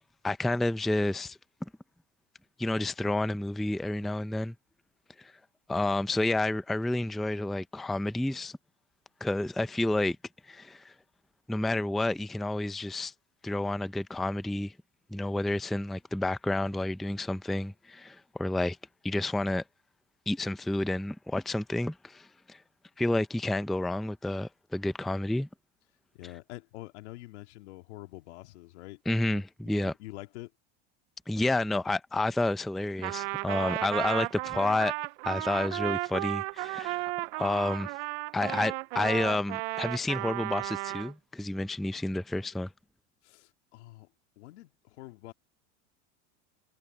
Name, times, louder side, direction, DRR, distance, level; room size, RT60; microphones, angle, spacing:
voice 1, 0.0-1.4 2.6-4.5 5.2-5.3 5.7-8.6 9.2-10.2 10.5-10.9 11.5-13.1 13.4-14.7 15.1-18.8 19.0-19.6 20.3-22.6 23.0-25.5 29.1-29.9 31.3-34.9 35.2-38.0 38.3-42.7, left 2 dB, ahead, 0.4 m, -30 dB
voice 2, 26.1-29.0 29.3-29.4 29.7-30.5 43.2-44.1 44.4-45.3, left 19 dB, 75° left, 2.0 m, -46 dB
Trumpet, 33.0-41.1, right 25 dB, 65° right, 0.5 m, -34 dB
supercardioid pair, 140°, 34 cm